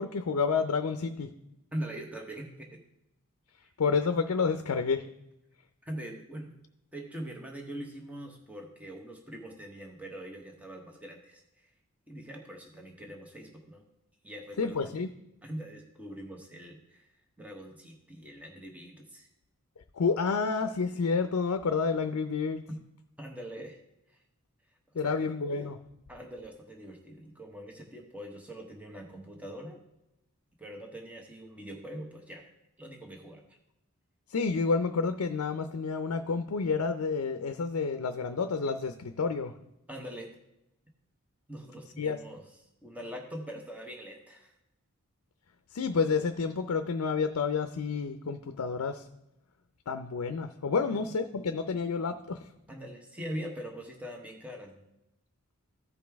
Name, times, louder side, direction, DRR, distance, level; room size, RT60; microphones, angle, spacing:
voice 1, 0.0-1.3 3.8-5.0 14.6-15.1 19.9-22.6 24.9-25.8 34.3-39.5 42.0-42.2 45.7-49.1 49.9-52.4, left 5 dB, 80° left, 8 dB, 0.5 m, -29 dB
voice 2, 1.7-2.8 3.6-3.7 5.8-6.5 6.9-11.7 12.1-13.8 14.2-14.9 15.4-17.1 17.4-19.3 22.7-22.8 23.2-23.8 24.1-24.2 24.9-25.3 26.1-29.8 30.6-32.5 32.8-33.4 39.9-40.3 41.5-42.4 42.8-44.5 50.9-51.0 52.7-54.8, right 1 dB, 5° right, 1 dB, 1.0 m, -42 dB
14.5 x 5.2 x 3.5 m, 0.86 s
head